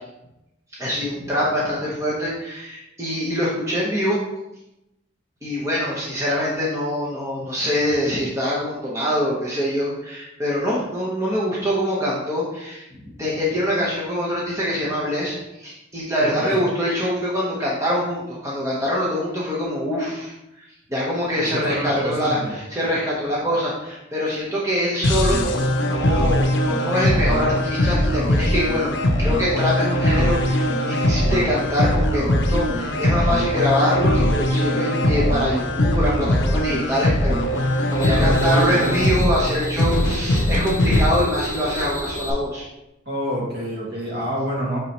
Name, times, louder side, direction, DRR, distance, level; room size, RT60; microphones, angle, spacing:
voice 1, 0.7-4.2 5.4-12.8 13.2-20.6 20.9-42.7, equal, 15° right, -6 dB, 1.0 m, -24 dB
voice 2, 16.2-16.6 21.3-22.5 38.2-39.0 43.0-44.8, equal, 50° right, -3 dB, 1.7 m, -27 dB
sound 1, 25.0-41.0, left 1 dB, 65° left, 0.7 m, -21 dB
sound 2, 37.5-42.3, equal, 25° left, 1.8 m, -32 dB
8.3 x 3.8 x 3.0 m, 0.90 s
head